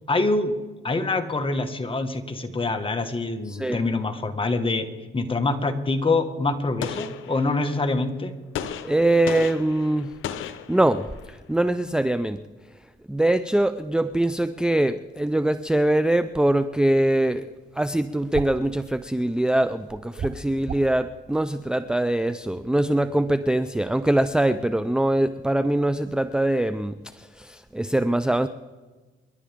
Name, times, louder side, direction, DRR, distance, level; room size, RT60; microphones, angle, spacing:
voice 1, 0.1-0.6 0.8-4.9 5.1-8.3, left 3 dB, 25° left, 7 dB, 1.7 m, -25 dB
voice 2, 3.5-3.8 8.8-10.1 10.7-12.4 13.1-17.4 17.8-28.5, right 1 dB, 5° right, 11 dB, 0.5 m, -23 dB
Gunshot gunfire, 6.8-7.9 8.5-11.3, left 9 dB, 85° left, 0.9 m, -35 dB
sound 1, 18.3-18.6 20.1-21.0, right 6 dB, 35° right, 0.9 m, -32 dB
29.0 x 11.5 x 3.6 m, 1.3 s
cardioid pair, 90°, 20 cm